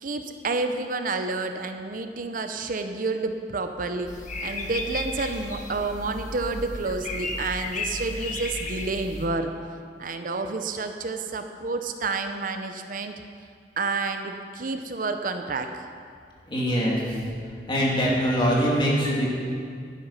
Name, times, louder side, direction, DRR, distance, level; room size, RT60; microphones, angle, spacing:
voice 1, 0.0-4.1 4.4-9.5 10.0-13.2 13.8-15.7, right 3 dB, 50° right, 7 dB, 0.7 m, -29 dB
sound 1, 4.1-9.3, left 2 dB, 45° left, 1.3 m, -34 dB
voice 2, 16.5-17.0 17.7-19.3, equal, 30° left, -5 dB, 2.8 m, -23 dB
11.0 x 11.0 x 5.6 m, 2.2 s
head